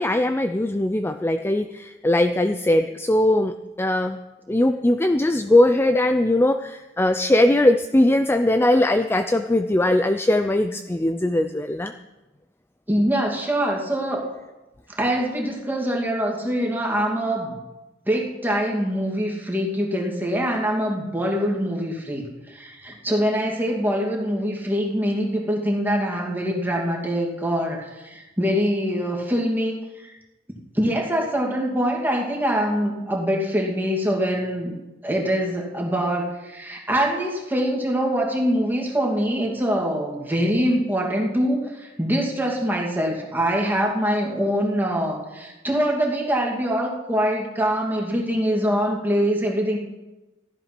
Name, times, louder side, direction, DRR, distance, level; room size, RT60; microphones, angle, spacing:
voice 1, 0.0-4.2 4.5-11.9, left 1 dB, 10° left, 8 dB, 0.4 m, -20 dB
voice 2, 12.9-14.2 14.9-17.6 18.1-30.1 30.7-34.8 35.0-49.8, equal, 10° right, -1 dB, 2.4 m, -24 dB
14.5 x 11.0 x 5.9 m, 1.1 s
head